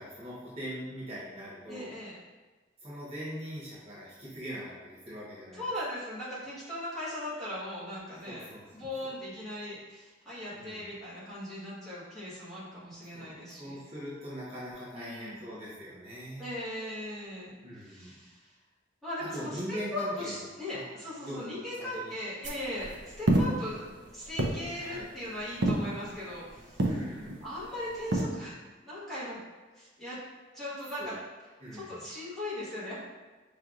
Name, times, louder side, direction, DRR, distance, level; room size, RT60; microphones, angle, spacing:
voice 1, 0.0-1.9 2.8-5.6 8.1-8.6 9.0-9.2 10.5-10.8 13.1-16.5 17.6-18.2 19.2-20.9 21.2-22.1 24.7-25.1 26.8-27.4 31.0-31.1 31.6-32.0, equal, 35° right, -8 dB, 1.1 m, -41 dB
voice 2, 1.7-2.2 5.5-8.5 8.7-13.8 14.9-15.4 16.4-18.5 19.0-26.9 27.4-28.6 28.8-29.4 29.7-30.2 30.5-31.2 31.7-33.0, left 1 dB, ahead, -11 dB, 1.4 m, -39 dB
sound 1, 22.4-28.2, right 1 dB, 70° right, 0.6 m, -32 dB
5.6 x 3.2 x 2.5 m, 1.2 s
head